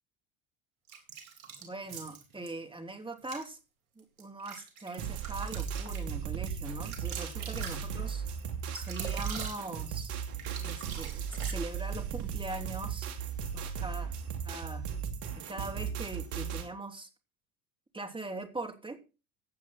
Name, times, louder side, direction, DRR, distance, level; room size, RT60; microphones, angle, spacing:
sound 1, 0.9-2.5 3.2-3.5 4.0-12.0, right 6 dB, 85° right, 3.9 m, -44 dB
voice 1, 1.6-3.6 3.9-8.4 8.7-10.1 10.6-13.1 13.5-14.1 14.4-14.9 15.4-17.1 17.9-19.0, right 2 dB, 10° right, 6 dB, 2.8 m, -41 dB
sound 2, 5.0-16.7, right 7 dB, 65° right, 2.6 m, -36 dB
16.0 x 8.5 x 4.2 m, 0.32 s
hypercardioid pair, 75°, 42 cm